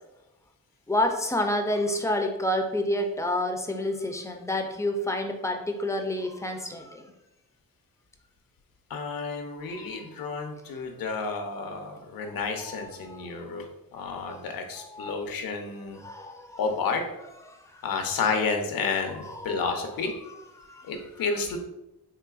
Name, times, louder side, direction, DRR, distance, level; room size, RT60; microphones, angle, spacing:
voice 1, 0.9-7.1 9.7-9.9 12.3-13.3 14.2-14.4 14.8-15.2 16.0-16.6 17.5-17.8 19.2-19.6 20.2-20.8, left 1 dB, 10° left, 4 dB, 0.3 m, -29 dB
voice 2, 8.9-13.7 13.9-16.0 16.6-17.0 17.8-20.1 20.8-21.6, left 4 dB, 85° left, 5 dB, 0.6 m, -30 dB
3.8 x 3.1 x 2.3 m, 0.93 s
wide cardioid pair, 135°, 34 cm